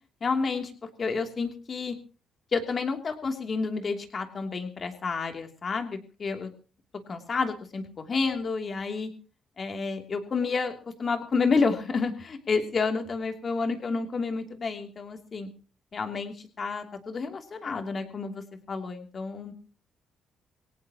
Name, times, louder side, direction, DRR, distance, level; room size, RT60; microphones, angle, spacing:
voice 1, 0.2-2.0 2.5-6.5 7.1-9.1 9.6-15.5 15.9-19.5, left 4 dB, 40° left, 5 dB, 2.9 m, -30 dB
22.0 x 18.0 x 3.0 m, 0.36 s
cardioid pair, 90°, 0 cm